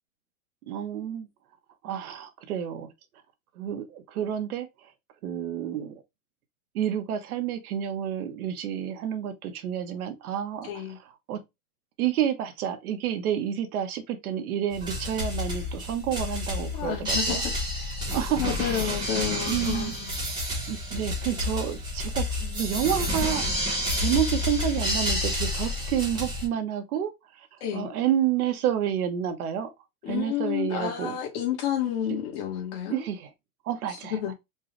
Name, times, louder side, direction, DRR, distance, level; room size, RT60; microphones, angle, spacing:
voice 1, 0.6-1.3 1.8-2.9 3.6-4.7 5.2-6.0 6.7-10.7 11.3-11.4 12.0-17.4 18.1-18.4 18.7-19.0 19.5-19.9 20.7-23.7 24.0-27.1 27.4-27.5 27.7-29.7 30.1-31.2 32.9-33.3 33.6-34.2, right 10 dB, 80° right, 1.1 m, -29 dB
voice 2, 10.6-11.0 16.7-17.5 18.0-20.3 27.6-27.9 30.0-33.0 33.9-34.3, left 10 dB, 45° left, 1.5 m, -31 dB
sound 1, 14.7-26.5, left 1 dB, 10° right, 0.9 m, -29 dB
4.6 x 2.3 x 3.1 m
supercardioid pair, 175°, 43 cm